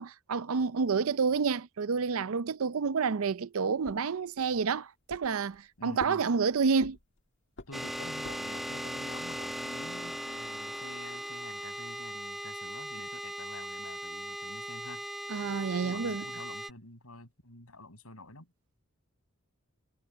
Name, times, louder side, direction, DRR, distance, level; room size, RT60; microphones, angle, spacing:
voice 1, 0.0-7.0 15.3-16.2, right 5 dB, 70° right, 0.5 m, -29 dB
sound 1, 3.8-4.7 5.1-5.7 6.0-7.2 7.6-8.7, left 2 dB, 55° left, 2.0 m, -47 dB
voice 2, 5.8-6.2 7.7-15.0 15.8-18.5, left 2 dB, 80° left, 7.4 m, -48 dB
sound 2, 7.7-16.7, equal, ahead, 1.6 m, -38 dB
head